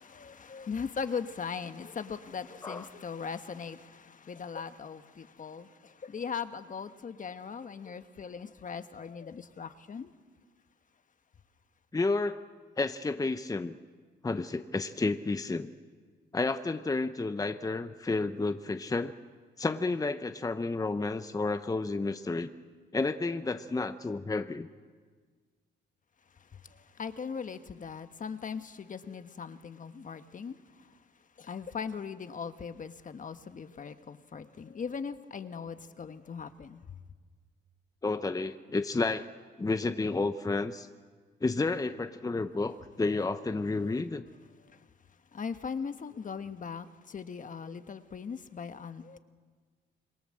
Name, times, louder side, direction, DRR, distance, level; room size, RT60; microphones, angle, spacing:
voice 1, 0.0-10.1 26.5-30.9 31.4-37.0 43.8-44.0 44.7-44.9 45.3-49.2, left 6 dB, 40° left, 1.3 m, -39 dB
voice 2, 11.9-12.4 12.8-13.8 14.2-15.7 16.3-19.1 19.6-22.5 22.9-24.7 38.0-39.3 39.6-40.9 41.4-44.2, left 3 dB, 20° left, 0.9 m, -31 dB
27.0 x 22.0 x 7.7 m
cardioid pair, 90°, 20 cm